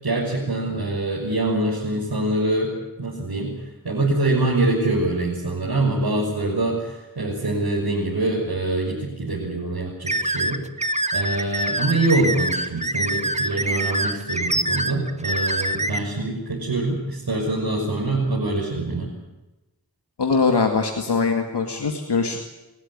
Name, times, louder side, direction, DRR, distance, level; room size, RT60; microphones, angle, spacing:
voice 1, 0.0-2.7 3.0-3.5 3.8-10.6 11.1-19.1, right 2 dB, 75° right, -4 dB, 6.1 m, -24 dB
sound 1, 10.1-16.0, right 1 dB, 15° right, 1.5 m, -25 dB
voice 2, 20.2-22.4, left 4 dB, 90° left, 3 dB, 2.2 m, -22 dB
29.5 x 13.0 x 9.9 m, 1.0 s
wide cardioid pair, 50°, 39 cm